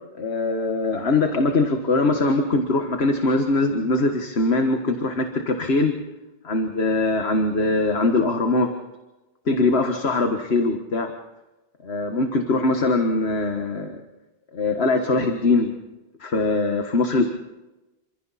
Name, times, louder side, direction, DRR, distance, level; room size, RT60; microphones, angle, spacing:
voice 1, 0.1-6.0 6.4-8.7 9.5-11.1 11.8-14.0 14.5-15.7 16.2-17.2, left 2 dB, 85° left, 5 dB, 1.8 m, -22 dB
29.0 x 26.5 x 4.2 m, 1.0 s
omnidirectional pair, 1.1 m